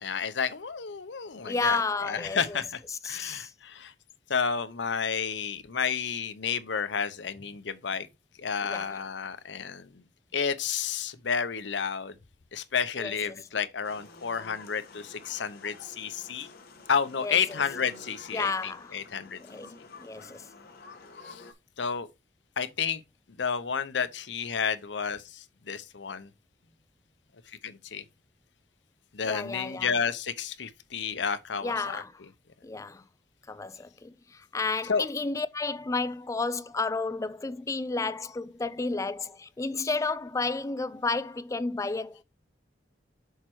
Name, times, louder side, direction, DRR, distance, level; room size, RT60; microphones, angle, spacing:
voice 1, 0.0-3.9 4.3-8.1 8.4-9.9 10.3-12.1 12.5-16.5 16.9-19.4 21.2-21.4 21.8-22.1 22.6-23.0 23.4-26.3 27.6-28.0 29.1-32.0 34.9-35.1, left 6 dB, 75° left, 0.8 m, -31 dB
voice 2, 1.4-2.6 2.9-3.5 8.6-9.0 13.0-13.5 17.2-17.6 18.3-19.0 19.4-20.5 29.2-29.9 31.6-32.1 32.6-33.0 33.5-42.2, left 3 dB, 15° left, 0.4 m, -32 dB
sound 1, 13.8-21.5, left 3 dB, 55° left, 1.4 m, -49 dB
6.5 x 4.4 x 4.6 m
head